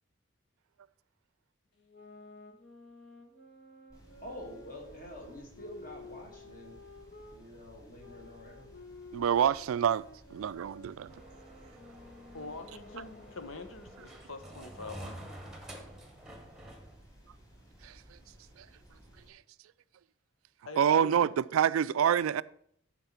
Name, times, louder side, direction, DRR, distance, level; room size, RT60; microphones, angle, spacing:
sound 1, 1.8-7.4 8.0-13.6, left 2 dB, 60° left, 1.7 m, -53 dB
sound 2, 3.9-19.3, right 1 dB, 15° left, 3.1 m, -58 dB
voice 1, 4.2-6.8 7.3-8.7, left 1 dB, 40° left, 2.1 m, -47 dB
voice 2, 9.1-10.0 10.3-11.1 17.8-17.9 20.8-22.4, right 8 dB, 85° right, 0.3 m, -26 dB
sound 3, 11.1-17.0, right 1 dB, ahead, 1.1 m, -49 dB
voice 3, 12.3-15.4 20.7-21.3, left 3 dB, 80° left, 0.9 m, -45 dB
11.5 x 4.6 x 5.9 m
head